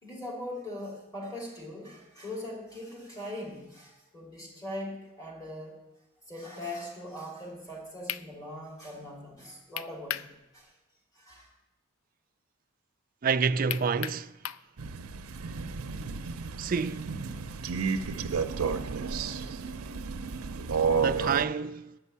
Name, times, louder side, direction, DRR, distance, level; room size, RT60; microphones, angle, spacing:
voice 1, 0.0-5.8 6.3-10.7 11.1-11.5, left 1 dB, 15° left, 2.6 m, -41 dB
sound 1, 7.7-7.8 8.1-8.3 9.8-10.3 10.7-10.8 13.7-14.7, left 11 dB, 70° left, 0.4 m, -35 dB
voice 2, 13.2-14.3 16.6-17.2 20.9-22.0, right 5 dB, 40° right, 0.3 m, -28 dB
Crow, 14.8-21.4, right 5 dB, 90° right, 0.6 m, -32 dB
10.0 x 5.5 x 8.3 m
head